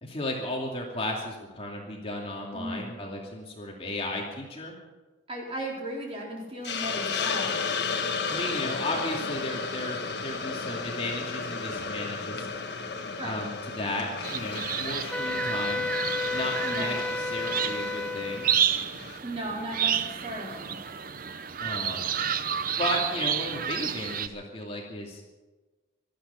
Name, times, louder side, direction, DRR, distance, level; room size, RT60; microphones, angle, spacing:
voice 1, 0.0-4.7 8.3-12.5 13.2-15.9 16.3-18.5 21.6-22.1 22.8-25.3, left 1 dB, 30° left, -1 dB, 2.5 m, -34 dB
voice 2, 2.5-2.8 5.3-7.5 13.2-13.4 16.7-17.0 19.2-20.7, right 1 dB, 30° right, -2 dB, 4.2 m, -36 dB
Hiss, 6.6-19.2, left 5 dB, 55° left, 1.5 m, -34 dB
sound 1, 14.2-24.3, right 8 dB, 45° right, 0.6 m, -31 dB
Wind instrument woodwind instrument, 15.1-18.6, left 2 dB, 5° left, 0.5 m, -31 dB
18.0 x 13.0 x 5.8 m, 1.2 s
head